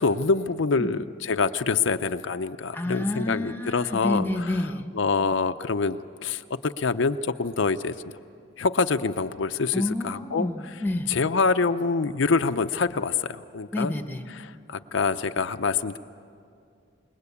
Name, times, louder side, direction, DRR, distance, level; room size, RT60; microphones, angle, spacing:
voice 1, 0.0-4.5 4.9-7.9 8.6-10.5 11.1-13.9 14.3-16.0, left 4 dB, 75° left, 8 dB, 0.6 m, -25 dB
voice 2, 2.7-4.8 9.7-11.1 13.7-14.2, left 1 dB, 10° left, 7 dB, 1.1 m, -29 dB
28.0 x 20.0 x 8.4 m, 2.4 s
head